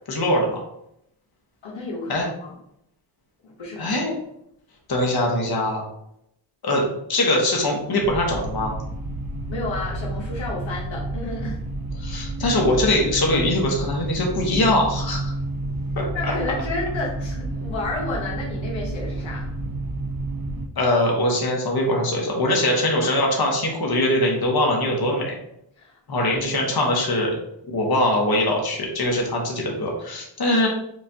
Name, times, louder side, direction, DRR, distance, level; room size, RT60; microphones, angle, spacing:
voice 1, 0.1-0.6 2.1-2.3 3.8-4.1 4.9-5.8 6.6-6.8 7.1-8.8 12.0-15.3 16.0-16.3 20.8-25.3 26.1-27.3 27.7-30.7, left 1 dB, 55° left, -1 dB, 1.3 m, -22 dB
voice 2, 1.6-2.5 3.4-4.1 9.5-11.6 16.1-19.5 25.8-26.3, left 2 dB, 85° left, -3 dB, 1.2 m, -31 dB
sound 1, 8.0-20.7, right 2 dB, 50° right, 0.8 m, -30 dB
6.7 x 2.5 x 2.8 m, 0.77 s
cardioid pair, 65°, 45 cm